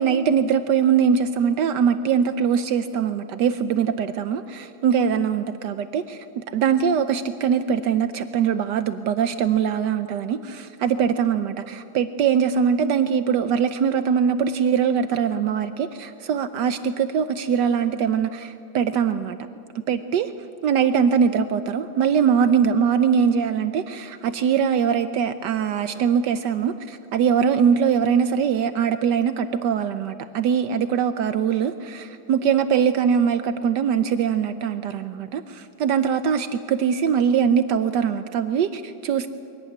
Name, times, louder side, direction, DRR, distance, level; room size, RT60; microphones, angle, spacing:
voice 1, 0.0-19.4 19.9-20.3 20.6-39.3, right 7 dB, 75° right, 10 dB, 1.4 m, -22 dB
23.5 x 17.5 x 9.4 m, 2.6 s
omnidirectional pair, 1.9 m